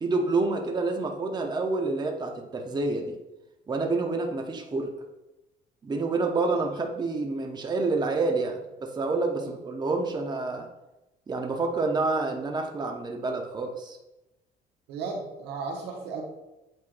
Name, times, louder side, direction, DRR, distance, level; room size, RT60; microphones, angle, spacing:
voice 1, 0.0-3.2 3.7-4.9 5.8-10.7 11.3-14.0, right 3 dB, 25° right, 3 dB, 0.8 m, -28 dB
voice 2, 14.9-16.2, right 4 dB, 90° right, 0 dB, 1.4 m, -35 dB
8.4 x 4.5 x 2.5 m, 0.96 s
cardioid pair, 110°, 17 cm